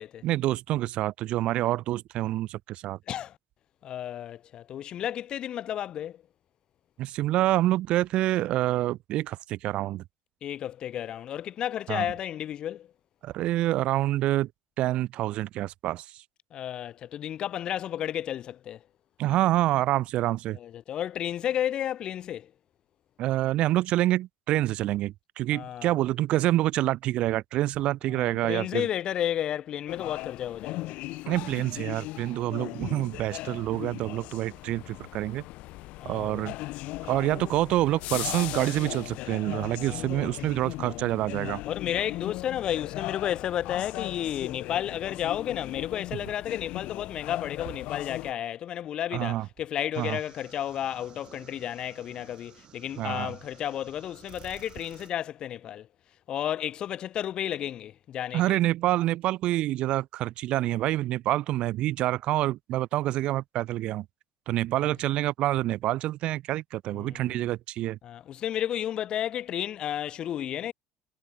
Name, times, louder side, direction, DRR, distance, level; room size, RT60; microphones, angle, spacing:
voice 1, 0.2-3.0 7.0-10.0 11.9-12.1 13.2-14.5 14.8-16.2 19.2-20.6 23.2-28.9 31.3-35.4 36.0-36.6 37.1-41.6 49.1-49.5 50.0-50.2 53.0-53.3 58.3-64.1 64.5-68.0, right 15 dB, 50° right, 0.5 m, -27 dB
voice 2, 3.1-3.4 3.8-6.2 10.4-12.9 16.5-18.8 20.5-22.5 25.5-25.9 28.1-31.0 36.0-36.6 39.8-40.3 41.6-55.9 56.3-58.6 64.8-64.9 66.9-67.2 68.0-70.7, left 11 dB, 40° left, 1.0 m, -32 dB
sound 1, 29.9-48.3, left 19 dB, 65° left, 1.1 m, -38 dB
sound 2, 49.9-55.1, right 10 dB, 35° right, 2.6 m, -53 dB
cardioid pair, 160°, 2 cm